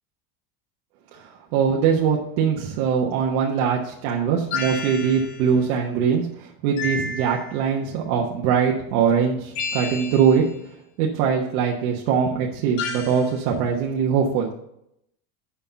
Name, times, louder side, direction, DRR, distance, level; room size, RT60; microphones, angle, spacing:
voice 1, 1.1-10.4 11.0-14.5, right 7 dB, 65° right, -2 dB, 1.4 m, -22 dB
sound 1, 4.5-5.5 6.8-7.7 9.5-10.5 12.8-13.3, left 4 dB, 60° left, 2.3 m, -31 dB
6.9 x 5.6 x 6.8 m, 0.77 s
supercardioid pair, 155°, 45 cm